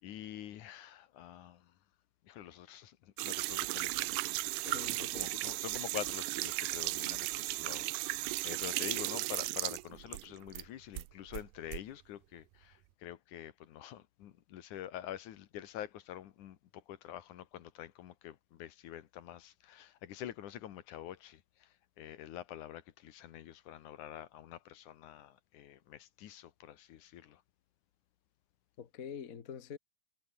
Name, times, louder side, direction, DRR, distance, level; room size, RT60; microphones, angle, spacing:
voice 1, 0.0-1.7 2.2-27.4, left 12 dB, 70° left, 2.7 m, -47 dB
sound 1, 3.2-10.7 11.0-11.8, right 20 dB, 85° right, 2.2 m, -36 dB
voice 2, 4.7-5.6 28.8-29.8, left 7 dB, 50° left, 0.9 m, -46 dB
omnidirectional pair, 3.8 m